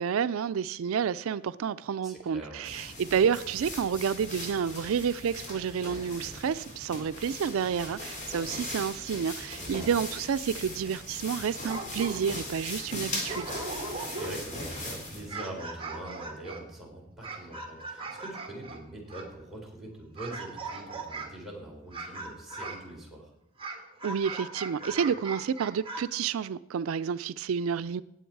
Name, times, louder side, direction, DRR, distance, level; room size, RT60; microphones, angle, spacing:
voice 1, 0.0-13.5 24.0-28.0, right 7 dB, 80° right, 0.4 m, -30 dB
voice 2, 2.0-2.8 9.6-9.9 13.8-23.3, right 1 dB, ahead, 4.1 m, -43 dB
sound 1, 2.6-15.3, left 1 dB, 40° left, 3.6 m, -39 dB
sound 2, 11.5-12.4 12.9-13.0 13.3-14.6 15.1-19.3 20.1-21.4 21.9-22.9 23.6-26.0, right 3 dB, 25° right, 1.7 m, -39 dB
18.0 x 7.8 x 4.6 m
head